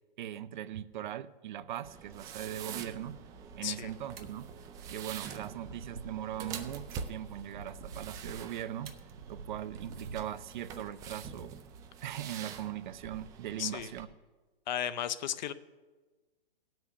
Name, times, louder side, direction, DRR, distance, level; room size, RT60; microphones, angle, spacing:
voice 1, 0.2-3.2 3.5-4.5 4.9-8.9 9.3-11.6 12.0-14.1, right 11 dB, 55° right, 15 dB, 0.6 m, -40 dB
sound 1, 1.8-14.0, right 6 dB, 10° right, 0.4 m, -46 dB
sound 2, 2.9-10.4, right 4 dB, 80° right, 1.3 m, -50 dB
voice 2, 13.6-13.9 14.7-15.5, left 10 dB, 50° left, 13 dB, 0.7 m, -34 dB
16.5 x 6.1 x 6.5 m, 1.3 s
hypercardioid pair, 125°, 29 cm